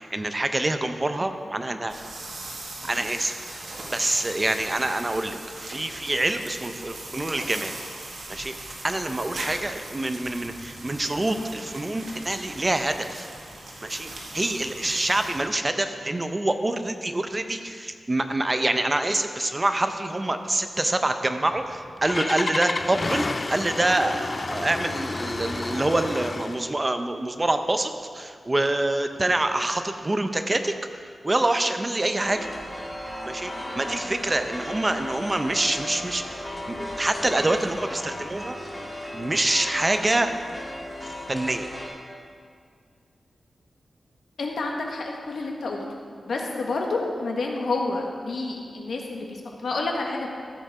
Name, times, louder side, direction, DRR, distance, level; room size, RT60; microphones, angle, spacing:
voice 1, 0.0-2.1 2.8-7.7 8.3-13.3 13.8-30.7 31.2-32.4 33.3-38.6 39.1-40.3 41.0-41.7, right 2 dB, 25° right, 7 dB, 0.6 m, -26 dB
sound 1, 1.9-15.4, right 2 dB, 75° right, 1.9 m, -40 dB
Engine starting, 21.5-26.7, left 3 dB, 35° left, 0.4 m, -30 dB
sound 2, 32.2-41.9, left 1 dB, 10° left, 2.0 m, -36 dB
voice 2, 44.4-45.8 46.3-50.3, left 3 dB, 80° left, 0 dB, 1.5 m, -29 dB
14.0 x 7.8 x 4.8 m, 2.1 s
wide cardioid pair, 125°, 0 cm